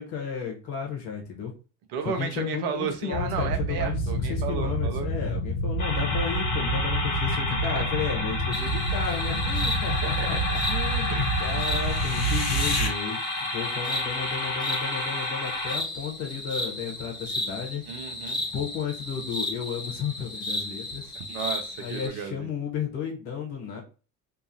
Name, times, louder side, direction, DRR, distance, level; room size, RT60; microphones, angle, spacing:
voice 1, 0.0-1.5 2.0-4.0 4.3-17.8 18.4-21.1 21.8-23.8, left 7 dB, 60° left, 1 dB, 1.1 m, -33 dB
voice 2, 1.9-5.1 7.3-7.4 7.7-7.8 10.0-10.4 11.1-11.3 17.9-18.4 21.1-22.5, right 7 dB, 55° right, 6 dB, 0.7 m, -33 dB
sound 1, 3.1-12.9, right 1 dB, 80° left, 0.7 m, -28 dB
sound 2, 5.8-15.8, left 2 dB, 40° left, 1.2 m, -31 dB
sound 3, 8.5-22.1, left 1 dB, 10° left, 1.1 m, -34 dB
2.8 x 2.4 x 2.6 m, 0.35 s
figure-of-eight pair, 60°, 45 cm